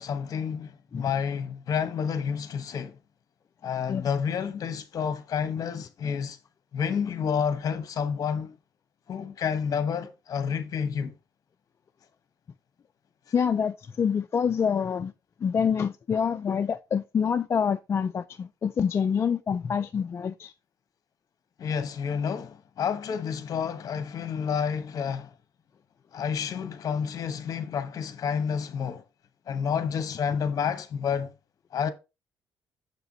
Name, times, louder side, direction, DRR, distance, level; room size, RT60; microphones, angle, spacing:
voice 1, 0.0-2.9 3.6-6.4 6.7-8.6 9.1-11.1 21.6-25.3 26.1-29.0 29.5-31.3 31.7-31.9, left 7 dB, 50° left, 0.9 m, -29 dB
voice 2, 13.3-15.1 15.4-20.5, left 7 dB, 35° left, 0.3 m, -26 dB
6.7 x 6.7 x 2.7 m
cardioid pair, 115°, 8 cm